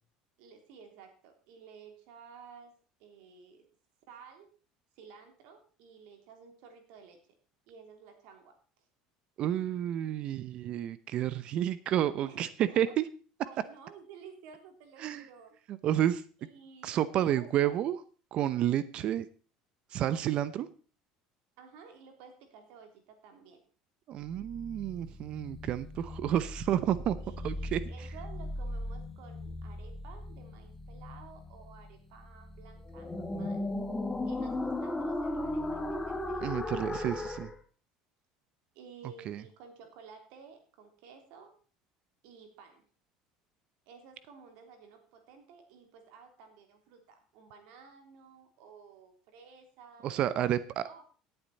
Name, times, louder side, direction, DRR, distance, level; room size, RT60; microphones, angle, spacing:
voice 1, 0.4-3.7 4.1-4.5 5.0-7.2 7.7-8.6 12.3-12.4 12.9-13.0 13.4-15.6 16.4-17.7 21.6-23.6 27.2-33.7 34.2-37.3 38.7-41.5 42.2-42.9 43.9-51.0, right 6 dB, 75° right, 4 dB, 3.4 m, -53 dB
voice 2, 9.4-13.1 15.0-15.3 15.7-16.2 16.8-18.0 18.3-19.3 19.9-20.7 24.1-27.2 27.4-27.8 36.4-37.5 39.3-39.4 50.0-50.8, right 11 dB, 55° right, 15 dB, 0.8 m, -30 dB
sound 1, 24.3-37.5, left 1 dB, 10° left, 1.6 m, -37 dB
17.0 x 8.0 x 4.2 m, 0.38 s
supercardioid pair, 110°, 2 cm